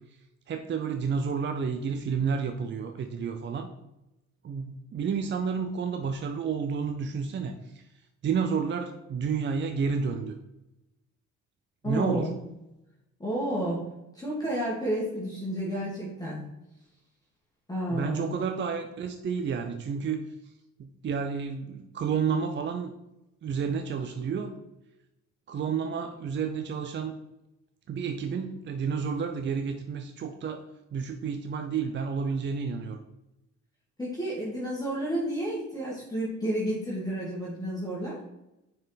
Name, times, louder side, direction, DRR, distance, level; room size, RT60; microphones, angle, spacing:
voice 1, 0.5-3.7 4.4-7.8 8.2-10.3 11.8-12.3 17.9-20.5 20.8-22.9 23.4-24.5 25.5-27.1 27.9-30.6 30.9-33.0, right 6 dB, 40° right, 6 dB, 0.5 m, -30 dB
voice 2, 11.8-12.3 13.2-13.9 14.1-16.4 17.7-18.3 34.0-38.2, right 1 dB, 10° left, -6 dB, 1.8 m, -31 dB
6.2 x 4.5 x 4.0 m, 0.91 s
cardioid pair, 90°, 30 cm